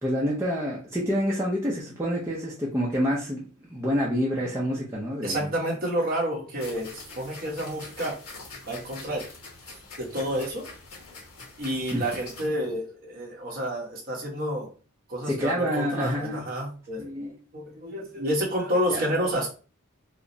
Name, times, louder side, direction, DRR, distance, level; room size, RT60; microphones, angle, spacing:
voice 1, 0.0-5.5 11.9-12.0 15.3-16.4 17.0-17.4 18.9-19.1, equal, 10° right, 0.6 m, -27 dB
voice 2, 5.2-8.2 8.7-9.3 10.0-10.6 11.6-14.7 15.1-17.1 17.5-19.5, equal, 40° right, 1.3 m, -29 dB
sound 1, 6.6-12.5, left 3 dB, 85° left, 1.4 m, -44 dB
4.9 x 2.1 x 2.7 m
head